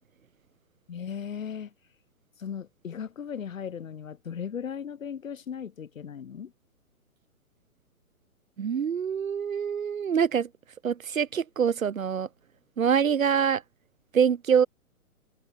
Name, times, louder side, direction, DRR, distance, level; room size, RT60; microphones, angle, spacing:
voice 1, 0.9-1.7 2.4-6.5, left 7 dB, 60° left, 2.7 m, -37 dB
voice 2, 8.6-10.5 10.8-12.3 12.8-13.6 14.1-14.7, right 7 dB, 65° right, 2.2 m, -25 dB
open air
figure-of-eight pair, 130°, 44 cm